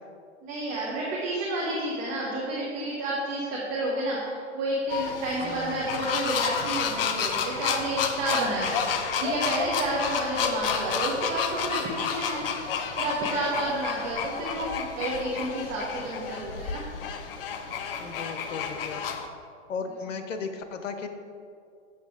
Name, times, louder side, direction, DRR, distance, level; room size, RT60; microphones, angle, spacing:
voice 1, 0.4-8.8 9.2-12.4 13.0-16.8, right 1 dB, 20° right, -5 dB, 1.0 m, -30 dB
sound 1, 4.9-19.3, left 6 dB, 50° left, 0.7 m, -30 dB
voice 2, 5.4-5.8 18.0-19.1 19.7-21.1, left 5 dB, 90° left, 7 dB, 1.0 m, -36 dB
7.2 x 7.1 x 3.7 m, 2.4 s
hypercardioid pair, 150°, 37 cm